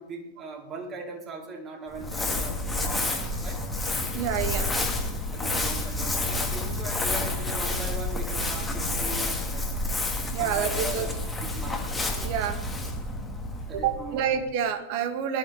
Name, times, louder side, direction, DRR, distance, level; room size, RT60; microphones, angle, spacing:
voice 1, 0.0-3.6 5.3-9.7 10.4-12.0 13.7-14.5, right 3 dB, 25° right, -1 dB, 4.0 m, -40 dB
Crumpling crinkling, 1.9-14.4, left 2 dB, 10° left, 2.2 m, -29 dB
voice 2, 4.1-4.7 10.3-11.1 12.2-12.6 13.7-15.4, right 8 dB, 45° right, 7 dB, 2.0 m, -28 dB
21.0 x 12.5 x 4.0 m, 0.91 s
figure-of-eight pair, 100°, 0 cm